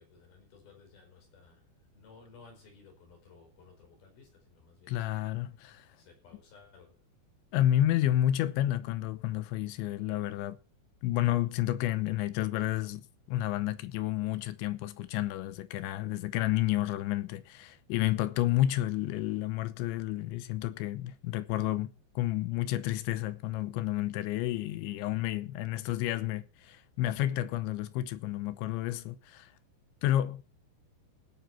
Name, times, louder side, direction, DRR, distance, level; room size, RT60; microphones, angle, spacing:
voice 1, 0.0-5.2 6.0-7.1 11.2-11.5, left 5 dB, 55° left, 6.7 m, -57 dB
voice 2, 4.9-5.9 7.5-10.6 11.0-13.0 13.3-29.5 30.0-30.4, left 13 dB, 80° left, 3.1 m, -30 dB
17.0 x 9.8 x 4.3 m
omnidirectional pair, 5.4 m